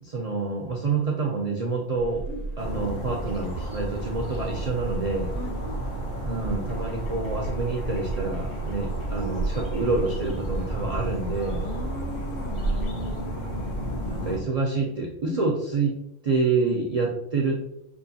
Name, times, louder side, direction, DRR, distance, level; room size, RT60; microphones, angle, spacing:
voice 1, 0.0-2.2 2.6-5.3 6.2-11.6 13.2-13.7 14.0-15.9 16.2-17.6, right 3 dB, 55° right, -1 dB, 0.4 m, -27 dB
sound 1, 2.0-12.9, right 3 dB, 90° right, 1.0 m, -34 dB
sound 2, 2.6-14.4, equal, 90° left, 1.5 m, -33 dB
voice 2, 11.6-13.8 15.2-15.5 16.6-16.8, left 2 dB, 70° left, 0 dB, 1.2 m, -37 dB
5.5 x 2.5 x 2.7 m, 0.82 s
omnidirectional pair, 1.3 m